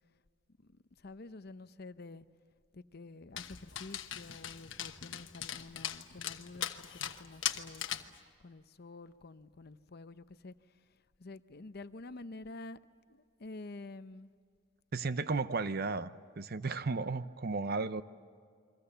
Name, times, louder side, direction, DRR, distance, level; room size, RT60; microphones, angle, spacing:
voice 1, 1.0-2.2 2.7-7.9 8.4-10.5 11.2-12.8 13.1-14.3, left 2 dB, 50° left, 0.7 m, -49 dB
Dog, 3.4-8.2, left 10 dB, 65° left, 1.2 m, -40 dB
voice 2, 14.9-18.0, right 3 dB, 50° right, 0.7 m, -34 dB
29.5 x 23.5 x 6.9 m
head